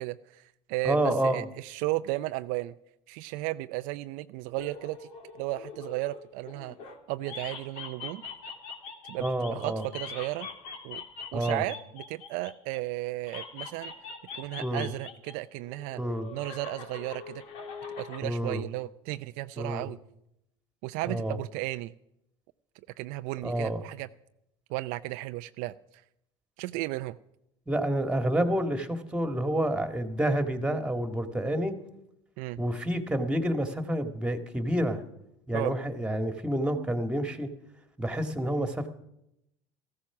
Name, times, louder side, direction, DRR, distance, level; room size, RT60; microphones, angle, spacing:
voice 1, 0.0-2.7 3.1-5.1 5.4-6.8 7.1-8.2 9.1-10.5 10.8-11.0 11.3-13.9 14.4-16.0 16.3-17.4 18.0-20.0 20.8-21.9 23.0-24.1 24.7-25.7 26.6-27.2 32.4-32.6 35.5-35.7, right 18 dB, 70° right, 12 dB, 0.4 m, -34 dB
voice 2, 0.8-1.4 9.2-9.8 11.3-11.6 14.6-14.9 16.0-16.3 18.2-18.6 19.6-19.9 21.1-21.4 23.4-23.8 27.7-31.8 32.6-35.0 35.5-37.5 38.0-38.9, right 1 dB, 5° right, 7 dB, 1.8 m, -28 dB
sound 1, 4.6-7.0 7.2-12.8 13.2-15.3 15.6-18.2, left 5 dB, 75° left, 2.4 m, -43 dB
14.5 x 13.5 x 6.0 m, 0.82 s
supercardioid pair, 85°, 14 cm